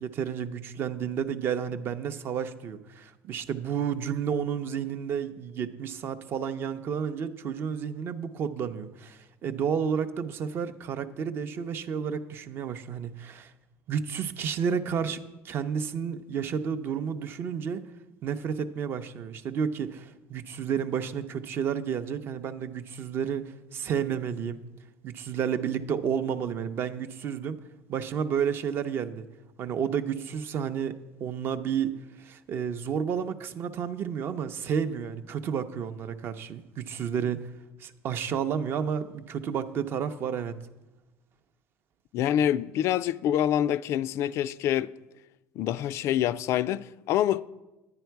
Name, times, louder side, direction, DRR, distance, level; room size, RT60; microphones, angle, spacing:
voice 1, 0.0-13.5 13.9-17.8 18.2-24.6 25.0-27.6 27.9-29.3 29.6-37.5 37.8-40.6, right 7 dB, 40° right, 0.6 m, -31 dB
voice 2, 42.1-44.9 45.6-47.4, left 11 dB, 50° left, 0.3 m, -26 dB
10.5 x 9.9 x 4.6 m
cardioid pair, 160°, 6 cm